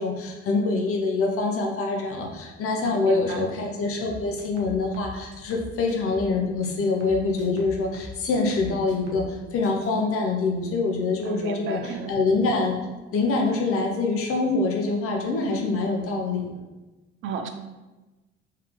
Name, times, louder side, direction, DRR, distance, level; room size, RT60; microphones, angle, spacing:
voice 1, 0.0-12.8 13.1-16.5, left 3 dB, 40° left, 1 dB, 0.8 m, -25 dB
voice 2, 2.9-3.4 11.3-12.2 17.2-17.5, right 5 dB, 40° right, 7 dB, 0.5 m, -33 dB
sound 1, 4.0-6.4 6.6-9.4 9.6-10.0, left 2 dB, 80° right, 0.7 m, -43 dB
3.5 x 2.8 x 3.5 m, 1.1 s
figure-of-eight pair, 50°, 33 cm